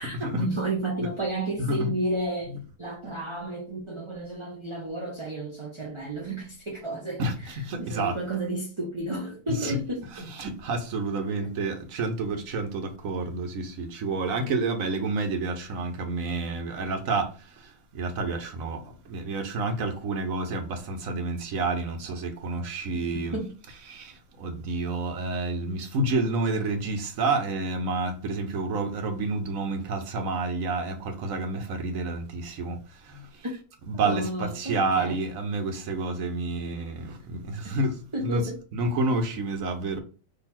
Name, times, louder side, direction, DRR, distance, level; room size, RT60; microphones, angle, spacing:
voice 1, 0.0-10.2 11.2-11.5 22.9-23.5 33.9-35.2 36.6-36.7 37.6-37.7 38.1-38.6, right 1 dB, 25° right, 0.8 m, -32 dB
voice 2, 1.6-1.9 7.2-7.3 7.6-8.2 9.6-9.8 10.2-23.4 23.9-33.4 33.9-40.0, right 3 dB, 85° right, 1.3 m, -29 dB
4.0 x 3.0 x 4.2 m
omnidirectional pair, 1.4 m